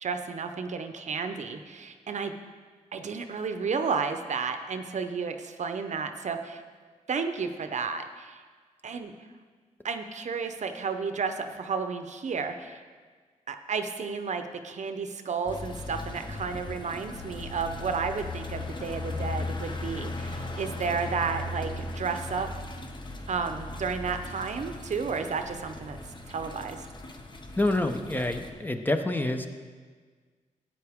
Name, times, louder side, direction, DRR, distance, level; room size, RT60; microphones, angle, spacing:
voice 1, 0.0-2.3 2.9-6.6 7.1-8.4 8.8-9.1 9.8-12.8 13.5-22.5 23.3-26.0 26.3-26.9, right 5 dB, 60° right, 7 dB, 0.7 m, -32 dB
sound 1, 15.5-28.5, left 2 dB, 35° left, 1.0 m, -38 dB
voice 2, 27.6-29.5, left 2 dB, 15° left, 6 dB, 0.7 m, -27 dB
12.5 x 8.7 x 3.6 m, 1.5 s
cardioid pair, 80°, 14 cm